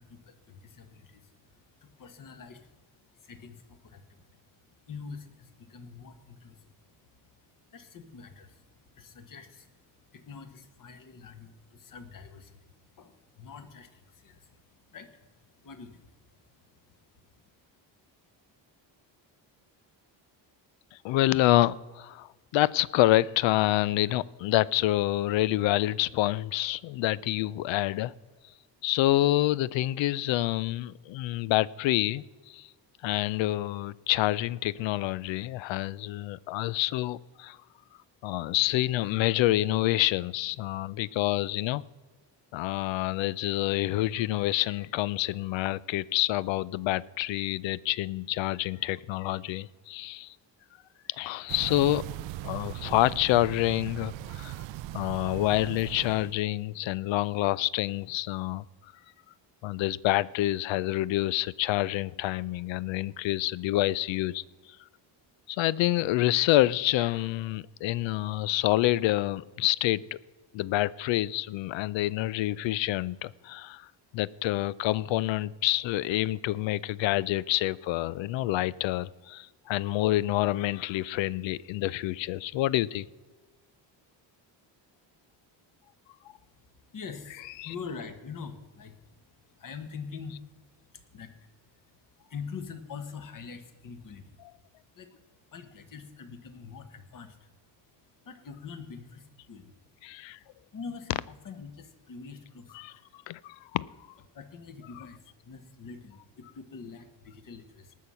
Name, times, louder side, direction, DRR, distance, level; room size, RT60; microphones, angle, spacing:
voice 1, 0.0-17.5 86.3-94.4 94.9-97.5 98.2-99.7 100.7-103.2 104.3-107.9, left 5 dB, 45° left, 1.5 m, -46 dB
voice 2, 21.0-28.1 28.8-32.7 33.0-37.6 38.2-41.8 42.5-50.3 51.2-52.1 52.4-54.6 54.9-58.7 59.6-64.4 65.5-70.2 70.5-73.9 74.1-83.1 87.6-87.7 100.0-100.4 102.8-102.9 103.3-103.9, left 16 dB, 80° left, 0.6 m, -27 dB
sound 1, 51.5-56.4, right 15 dB, 75° right, 0.6 m, -39 dB
19.0 x 6.4 x 5.6 m
cardioid pair, 130°, 45 cm